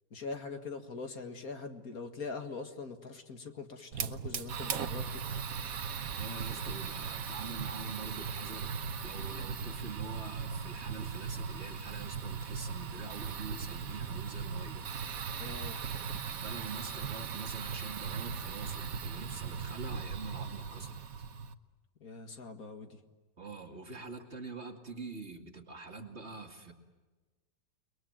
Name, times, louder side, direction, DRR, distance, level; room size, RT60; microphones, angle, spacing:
voice 1, 0.1-5.2 9.2-9.5 15.4-15.8 22.0-23.0, left 4 dB, 60° left, 6 dB, 2.2 m, -43 dB
Fire, 3.9-21.5, right 6 dB, 60° right, 1.4 m, -38 dB
voice 2, 6.1-8.7 9.0-14.8 16.4-20.9 23.4-26.7, right 3 dB, 40° right, 2 dB, 2.7 m, -45 dB
30.0 x 22.0 x 9.0 m, 1.3 s
omnidirectional pair, 1.8 m